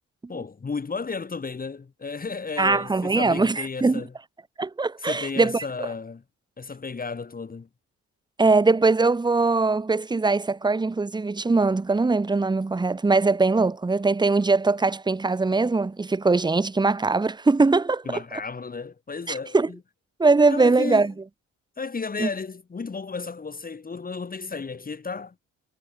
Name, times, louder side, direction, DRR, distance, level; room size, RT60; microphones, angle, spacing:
voice 1, 0.3-4.1 5.0-6.2 6.6-7.7 18.1-19.8 20.5-21.1 21.8-25.3, left 4 dB, 30° left, 2.1 m, -33 dB
voice 2, 2.6-4.0 4.6-5.6 8.4-18.2 19.3-19.7 20.2-21.1 22.2-22.3, right 3 dB, 15° right, 0.9 m, -21 dB
cardioid pair, 90°, 30 cm